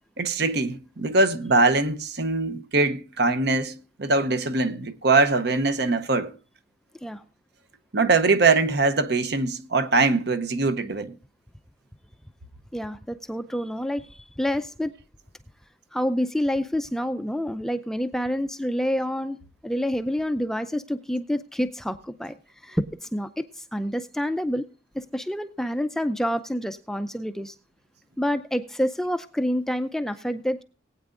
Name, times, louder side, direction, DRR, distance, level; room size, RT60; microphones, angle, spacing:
voice 1, 0.2-6.3 7.9-11.1, right 3 dB, 55° right, 0.8 m, -22 dB
voice 2, 12.7-14.9 15.9-19.4 19.6-22.4 22.6-24.7 24.9-27.5 28.2-30.6, equal, ahead, 0.4 m, -28 dB
19.5 x 8.9 x 2.5 m
head